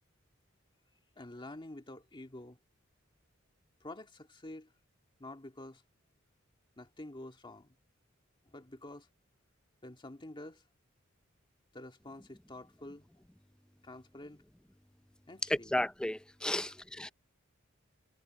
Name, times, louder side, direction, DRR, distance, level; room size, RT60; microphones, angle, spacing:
voice 1, 1.2-2.6 3.8-4.7 5.2-5.8 6.8-7.8 8.5-9.1 9.8-10.6 11.7-13.1 13.8-14.4 15.3-15.7 16.5-16.7, left 1 dB, 25° left, 1.9 m, -48 dB
voice 2, 15.5-17.1, left 1 dB, 5° left, 0.5 m, -33 dB
head